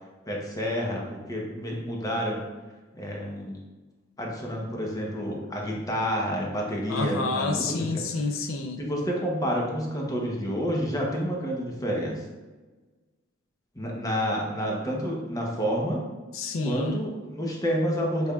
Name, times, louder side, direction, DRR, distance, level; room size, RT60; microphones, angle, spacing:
voice 1, 0.3-2.4 2.9-3.6 4.2-8.0 8.8-12.2 13.7-16.0 16.6-18.3, equal, 20° left, -2 dB, 0.8 m, -29 dB
voice 2, 6.9-8.8 16.3-17.1, left 3 dB, 80° left, 6 dB, 0.4 m, -29 dB
6.8 x 3.4 x 2.3 m, 1.3 s
head